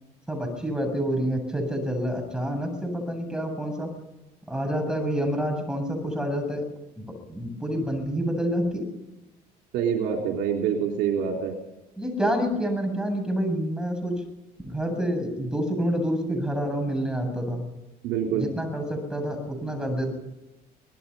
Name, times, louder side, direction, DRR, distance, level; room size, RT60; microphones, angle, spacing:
voice 1, 0.3-3.9 4.5-6.6 7.3-8.9 12.0-14.2 14.6-17.6 18.3-20.1, equal, 5° right, 4 dB, 7.9 m, -28 dB
voice 2, 9.7-11.5 18.0-18.5, right 7 dB, 90° right, 1 dB, 3.6 m, -26 dB
24.5 x 19.5 x 5.6 m, 1.0 s
cardioid pair, 110°, 17 cm